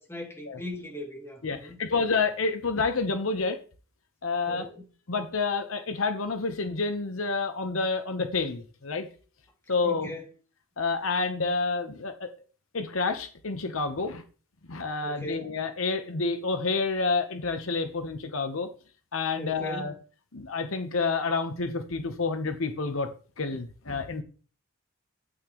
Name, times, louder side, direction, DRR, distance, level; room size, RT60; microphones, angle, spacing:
voice 1, 0.0-2.0 4.5-4.8 9.8-10.2 15.0-15.6 19.4-20.0, left 1 dB, 15° left, 2.6 m, -39 dB
voice 2, 1.4-3.6 4.2-4.7 5.1-9.1 9.7-10.1 10.8-12.3 12.7-14.2 14.7-18.7 19.1-19.9 20.3-23.1 23.4-24.2, left 4 dB, 75° left, 1.0 m, -29 dB
12.5 x 8.8 x 3.1 m
head